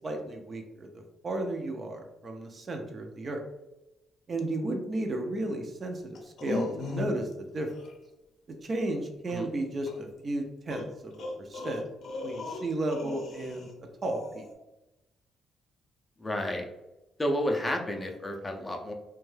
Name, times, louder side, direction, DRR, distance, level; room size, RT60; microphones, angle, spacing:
voice 1, 0.0-0.9 1.2-3.4 4.3-7.7 8.6-11.8 12.2-13.7 14.0-14.5, right 2 dB, 40° right, 4 dB, 0.5 m, -33 dB
sound 1, 6.1-7.3 7.7-7.9 9.9-10.0 10.7-13.7 14.0-14.5, left 3 dB, 65° left, 0.5 m, -37 dB
voice 2, 16.2-16.7 17.2-18.9, left 1 dB, 15° left, 2 dB, 0.4 m, -31 dB
2.5 x 2.2 x 3.2 m, 0.96 s
cardioid pair, 90°, 0 cm